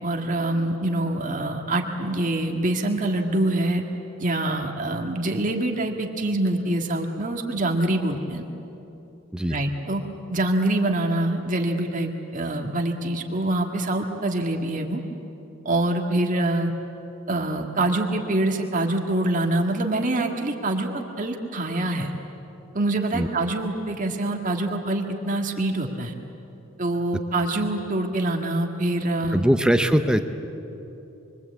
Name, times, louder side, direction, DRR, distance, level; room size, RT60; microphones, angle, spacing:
voice 1, 0.0-3.8 4.2-8.5 9.5-10.0 10.3-15.0 15.7-16.7 17.3-20.9 21.2-22.1 22.7-26.1 26.8-29.5, right 1 dB, 40° right, 2 dB, 2.0 m, -25 dB
voice 2, 29.3-30.2, equal, 5° right, 7 dB, 0.8 m, -20 dB
26.5 x 23.5 x 8.4 m, 3.0 s
head